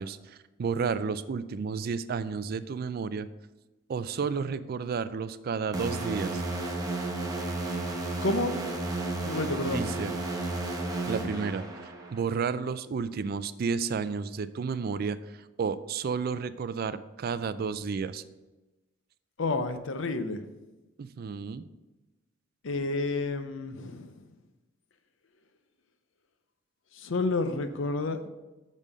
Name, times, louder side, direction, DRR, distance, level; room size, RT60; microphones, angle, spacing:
voice 1, 0.0-3.3 3.9-6.4 9.6-10.1 11.1-18.2 21.0-21.6, right 5 dB, 50° right, 14 dB, 0.3 m, -32 dB
sound 1, 5.7-12.2, right 2 dB, 20° right, 1.0 m, -33 dB
voice 2, 8.2-8.6 9.2-9.8 19.4-20.4 22.6-24.2 27.0-28.3, left 2 dB, 70° left, 9 dB, 0.6 m, -30 dB
6.4 x 5.5 x 5.1 m, 1.1 s
head